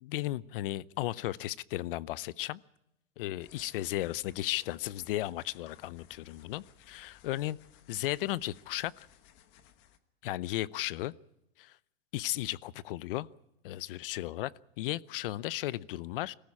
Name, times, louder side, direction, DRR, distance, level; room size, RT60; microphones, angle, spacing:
voice 1, 0.0-2.6 3.2-7.6 7.9-9.1 10.2-11.1 11.6-11.8 12.1-13.3 13.6-14.5 14.8-16.3, left 15 dB, 60° left, 21 dB, 0.7 m, -35 dB
sound 1, 3.4-10.0, left 10 dB, 35° left, 1.3 m, -60 dB
22.5 x 15.0 x 8.7 m, 0.86 s
supercardioid pair, 150°, 32 cm